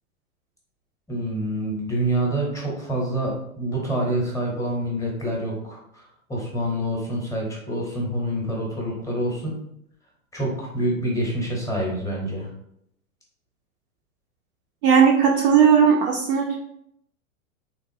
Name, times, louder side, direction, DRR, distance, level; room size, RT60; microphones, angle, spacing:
voice 1, 1.1-9.6 10.3-12.5, right 1 dB, 5° left, -2 dB, 0.8 m, -27 dB
voice 2, 14.8-16.6, right 7 dB, 40° right, 0 dB, 0.4 m, -17 dB
3.5 x 2.5 x 2.6 m, 0.74 s
figure-of-eight pair, 95°, 43 cm